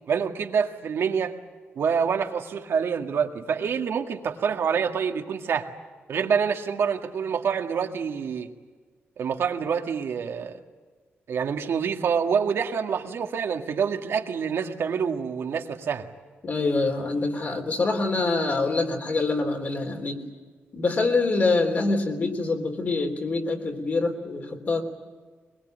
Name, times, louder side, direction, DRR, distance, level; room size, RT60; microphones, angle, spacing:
voice 1, 0.1-1.3 1.8-5.7 6.1-8.5 9.2-10.6 11.3-16.1, right 6 dB, 65° right, 4 dB, 1.9 m, -26 dB
voice 2, 16.4-20.2 20.7-24.8, left 3 dB, 40° left, 4 dB, 3.4 m, -25 dB
23.0 x 22.0 x 9.2 m, 1.5 s
wide cardioid pair, 160°, 4 cm